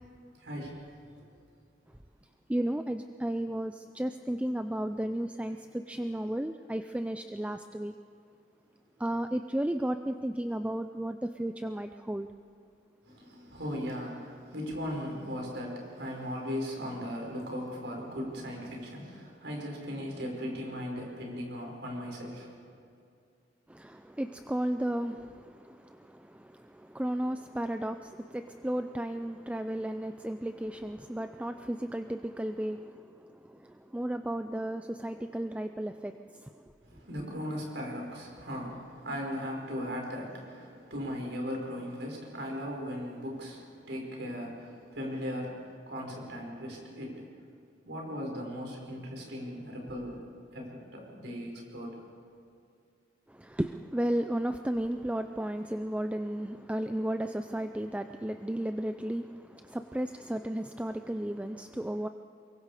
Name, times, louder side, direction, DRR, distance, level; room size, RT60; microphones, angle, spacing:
voice 1, 0.3-1.3 13.0-22.5 36.8-47.4 47.8-52.0, equal, 75° right, -1 dB, 5.1 m, -38 dB
voice 2, 2.5-7.9 9.0-12.3 23.7-36.5 53.3-62.1, right 1 dB, 5° right, 8 dB, 0.4 m, -34 dB
23.5 x 22.5 x 4.9 m, 2.5 s
head